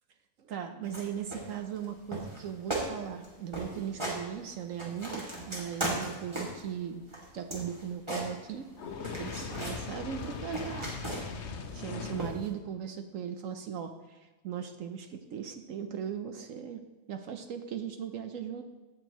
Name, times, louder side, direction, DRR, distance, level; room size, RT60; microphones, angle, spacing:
voice 1, 0.5-7.0 7.3-8.7 9.2-10.9 11.7-16.8 17.1-18.6, right 8 dB, 65° right, 7 dB, 1.0 m, -38 dB
sound 1, 0.8-1.0 1.3-1.9 2.1-2.4 2.7-2.9 3.2-3.3 3.5-4.2 4.6-6.6 7.1-8.7 9.0-9.8 10.2-11.5 12.2-12.5, right 1 dB, 20° right, 2.4 m, -36 dB
Fire, 8.8-12.4, left 5 dB, 55° left, 1.0 m, -40 dB
16.5 x 6.4 x 3.0 m, 1.2 s
omnidirectional pair, 1.6 m